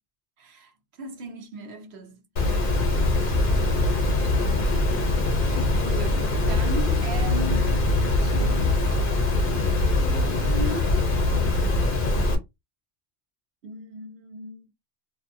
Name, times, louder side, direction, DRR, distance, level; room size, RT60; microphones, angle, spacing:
voice 1, 0.4-2.8 4.1-8.8 9.1-11.0 13.6-14.7, equal, 75° right, 1.0 m, -38 dB
Water, 2.4-12.4, left 2 dB, 55° left, 0.9 m, -22 dB
2.6 x 2.2 x 2.5 m
omnidirectional pair, 1.1 m